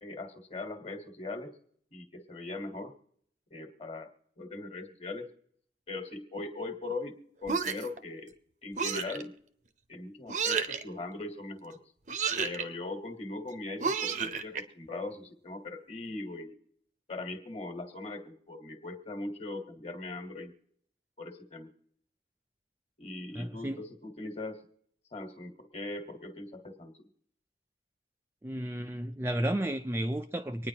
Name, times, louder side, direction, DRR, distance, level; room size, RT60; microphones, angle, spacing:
voice 1, 0.0-1.5 1.9-2.9 3.5-4.1 4.4-5.3 5.9-8.3 8.6-9.3 9.9-11.8 12.4-16.6 17.1-20.5 21.2-21.7 23.0-24.6 25.1-27.1, left 2 dB, 35° left, 1.5 m, -40 dB
sound 1, 7.5-8.0 8.8-9.2 10.3-10.8 12.1-12.6 13.8-14.6, right 5 dB, 45° right, 0.7 m, -31 dB
voice 2, 23.4-23.8 28.4-30.7, right 1 dB, 15° right, 0.4 m, -32 dB
25.5 x 9.7 x 2.9 m
head